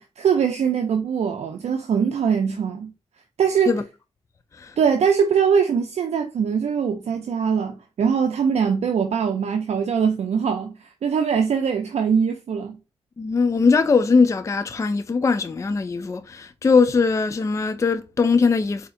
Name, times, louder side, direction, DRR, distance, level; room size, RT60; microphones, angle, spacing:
voice 1, 0.0-2.9 3.4-3.8 4.8-12.8, right 7 dB, 70° right, 0.5 m, -22 dB
voice 2, 13.2-18.9, left 4 dB, 25° left, 0.3 m, -20 dB
4.1 x 2.7 x 2.5 m
cardioid pair, 70°, 11 cm